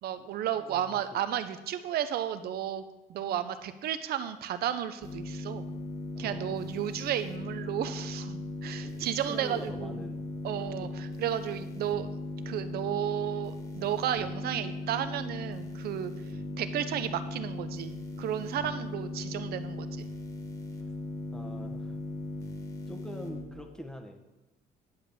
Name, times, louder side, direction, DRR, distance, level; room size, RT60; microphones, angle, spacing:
voice 1, 0.0-5.7 6.2-10.0 10.4-12.1 12.5-16.1 16.6-20.1, right 10 dB, 65° right, 12 dB, 0.8 m, -33 dB
voice 2, 0.5-1.2 6.1-6.6 8.8-10.2 10.5-11.0 21.3-22.0 22.9-24.2, equal, 5° left, 4 dB, 1.4 m, -45 dB
sound 1, 5.0-23.4, left 2 dB, 20° left, 1.9 m, -38 dB
10.0 x 5.0 x 7.2 m, 1.0 s
cardioid pair, 110°, 17 cm